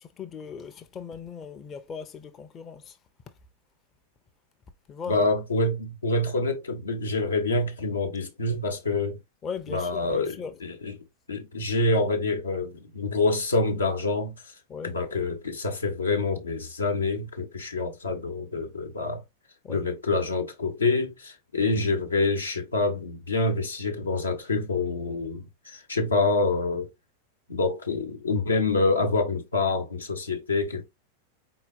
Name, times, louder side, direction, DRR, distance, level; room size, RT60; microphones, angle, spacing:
voice 1, 0.0-3.0 4.9-5.3 9.4-10.6 14.7-14.9 19.6-19.8, left 6 dB, 25° left, 0.6 m, -38 dB
voice 2, 5.1-9.2 9.7-10.3 10.6-10.9 11.3-14.5 14.8-19.2 19.7-26.9 27.5-30.8, left 3 dB, 75° left, 0.9 m, -26 dB
4.4 x 3.8 x 2.6 m
figure-of-eight pair, 90°, 0 cm